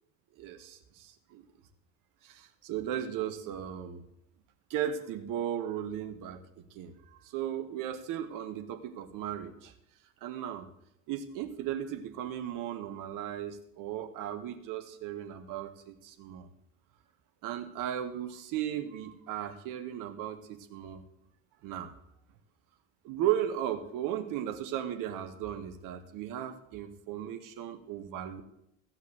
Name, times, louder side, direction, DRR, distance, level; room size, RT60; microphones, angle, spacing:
voice 1, 0.4-1.4 2.2-4.0 4.7-6.4 6.7-9.7 10.2-10.7 11.1-16.5 17.4-21.0 21.6-21.9 23.0-28.4, right 10 dB, 50° right, 7 dB, 1.7 m, -36 dB
15.5 x 5.8 x 7.8 m, 0.78 s
figure-of-eight pair, 70°, 40 cm